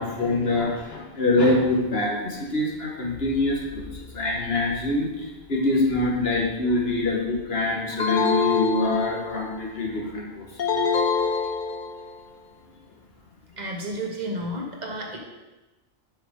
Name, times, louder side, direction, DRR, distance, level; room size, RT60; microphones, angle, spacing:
voice 1, 0.0-3.9 4.1-10.5, left 2 dB, 75° left, -1 dB, 1.7 m, -25 dB
sound 1, 8.0-9.6 10.6-12.2, left 5 dB, 50° left, 0.9 m, -25 dB
voice 2, 13.6-15.2, right 1 dB, 45° right, -1 dB, 1.5 m, -31 dB
7.6 x 5.2 x 5.3 m, 1.1 s
omnidirectional pair, 1.1 m